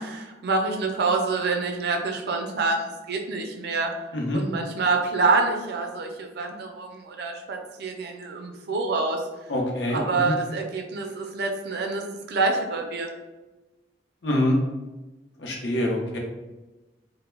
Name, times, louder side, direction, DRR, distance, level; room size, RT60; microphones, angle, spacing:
voice 1, 0.0-3.9 4.3-9.2 9.9-13.1, right 3 dB, 65° right, 3 dB, 0.4 m, -26 dB
voice 2, 9.5-10.0 10.2-10.3 14.2-14.6 15.4-16.2, left 1 dB, 70° left, -1 dB, 0.6 m, -25 dB
2.2 x 2.0 x 3.1 m, 1.1 s
head